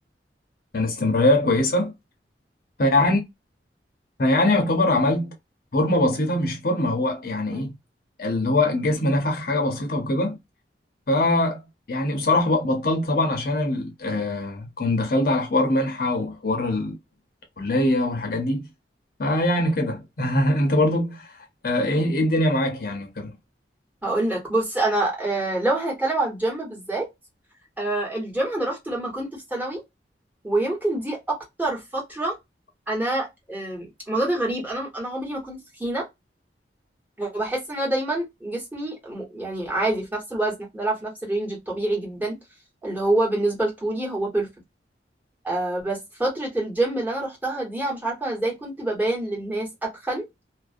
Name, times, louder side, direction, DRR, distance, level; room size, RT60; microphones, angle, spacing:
voice 1, 0.7-1.9 2.8-3.2 4.2-5.3 5.7-7.7 8.2-10.4 11.1-11.6 11.9-17.0 17.6-18.7 19.2-21.4 21.6-23.3, left 1 dB, 55° left, 0.7 m, -22 dB
voice 2, 24.0-27.1 27.8-29.8 30.4-32.4 32.9-36.0 37.2-42.4 42.8-44.5 45.4-50.2, right 2 dB, 10° right, 1.1 m, -26 dB
2.4 x 2.1 x 2.4 m
head